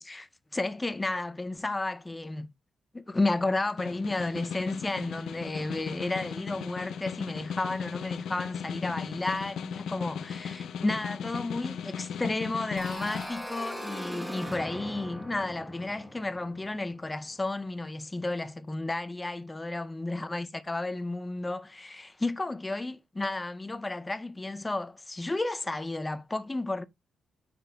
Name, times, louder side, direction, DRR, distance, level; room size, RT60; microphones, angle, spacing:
voice 1, 0.0-2.5 2.9-26.9, left 2 dB, 15° left, 0.4 m, -32 dB
Snare drum, 3.6-13.3, left 7 dB, 70° left, 0.5 m, -37 dB
sound 1, 12.8-17.4, equal, 5° right, 0.9 m, -40 dB
8.8 x 5.1 x 2.2 m
wide cardioid pair, 155°, 0 cm